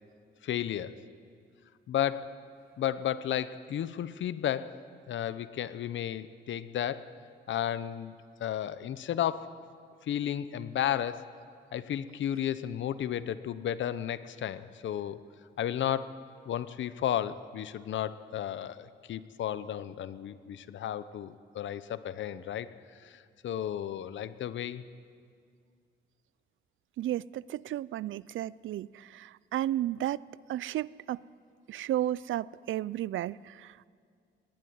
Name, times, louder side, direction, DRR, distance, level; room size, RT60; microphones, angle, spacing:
voice 1, 0.4-1.0 1.9-2.4 2.8-7.0 7.5-9.6 10.0-11.3 11.7-15.2 15.6-16.1 16.5-22.7 23.0-24.8, left 10 dB, 70° left, 15 dB, 0.8 m, -33 dB
voice 2, 27.0-30.2 30.5-31.2 31.7-33.9, right 13 dB, 75° right, 21 dB, 0.4 m, -33 dB
20.5 x 17.0 x 9.5 m, 2.2 s
wide cardioid pair, 170°, 20 cm